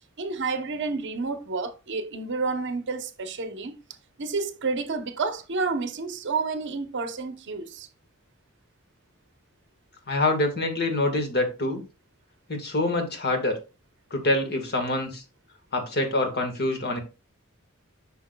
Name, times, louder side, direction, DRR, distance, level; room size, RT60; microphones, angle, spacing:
voice 1, 0.2-3.8 4.2-7.9, right 4 dB, 60° right, 0.7 m, -30 dB
voice 2, 10.1-11.8 12.5-13.5 14.1-15.2 15.7-17.0, left 2 dB, 50° left, 1.5 m, -25 dB
7.8 x 5.7 x 2.2 m
head